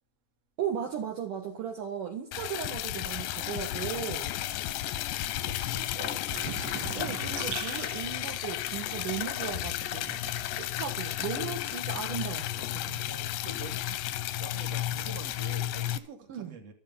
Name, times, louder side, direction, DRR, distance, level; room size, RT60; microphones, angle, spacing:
voice 1, 0.6-4.3 6.9-13.1 16.3-16.6, right 8 dB, 55° right, 3.1 m, -37 dB
Liquid, 2.3-16.0, left 14 dB, 90° left, 3.1 m, -33 dB
sound 1, 2.6-7.0, left 10 dB, 70° left, 2.0 m, -40 dB
voice 2, 3.7-4.1 5.2-6.2 13.1-16.7, right 3 dB, 40° right, 3.4 m, -46 dB
sound 2, 6.3-11.7 12.0-13.7, right 10 dB, 85° right, 3.6 m, -43 dB
13.5 x 12.0 x 7.0 m
omnidirectional pair, 4.8 m